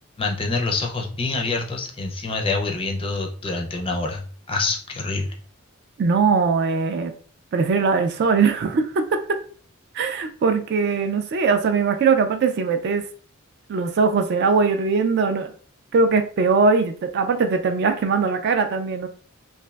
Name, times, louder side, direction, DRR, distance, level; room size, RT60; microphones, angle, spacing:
voice 1, 0.2-5.3, left 3 dB, 25° left, 2 dB, 0.4 m, -26 dB
voice 2, 6.0-7.1 7.5-9.2 9.9-13.0 13.7-15.5 15.9-19.1, right 4 dB, 50° right, 7 dB, 0.3 m, -20 dB
3.1 x 2.5 x 2.3 m, 0.43 s
head